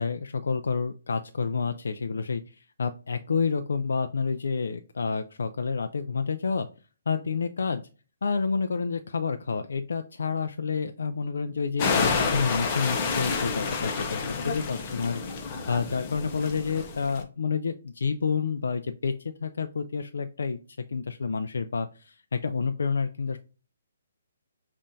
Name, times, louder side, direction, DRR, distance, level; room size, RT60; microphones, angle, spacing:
voice 1, 0.0-6.7 7.1-7.8 8.2-20.6 20.9-23.4, left 5 dB, 85° left, 7 dB, 0.3 m, -29 dB
sound 1, 11.8-17.2, left 4 dB, 30° left, 0.7 m, -29 dB
5.5 x 2.5 x 2.6 m, 0.36 s
hypercardioid pair, 160°, 0 cm